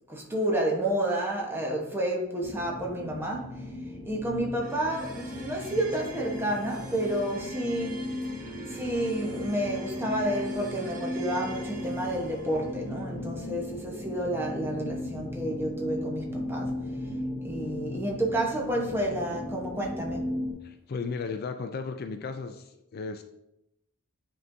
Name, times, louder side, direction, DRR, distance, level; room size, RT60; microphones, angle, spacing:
voice 1, 0.1-3.7 4.0-8.0 8.7-16.7 17.4-20.3, right 1 dB, 10° right, -1 dB, 1.0 m, -30 dB
sound 1, 2.4-20.5, left 1 dB, 25° left, 0.9 m, -36 dB
sound 2, 4.6-15.7, right 3 dB, 40° right, 0.9 m, -46 dB
voice 2, 20.6-23.2, left 4 dB, 45° left, 7 dB, 0.4 m, -35 dB
9.4 x 3.8 x 2.7 m, 0.87 s
head